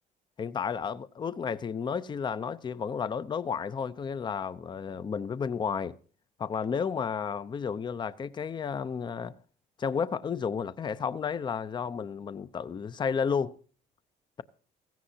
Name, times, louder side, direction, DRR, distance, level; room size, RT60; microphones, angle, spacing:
voice 1, 0.4-5.9 6.4-9.3 9.8-13.6, left 6 dB, 25° left, 0.5 m, -32 dB
16.5 x 14.5 x 2.7 m
cardioid pair, 110°, 17 cm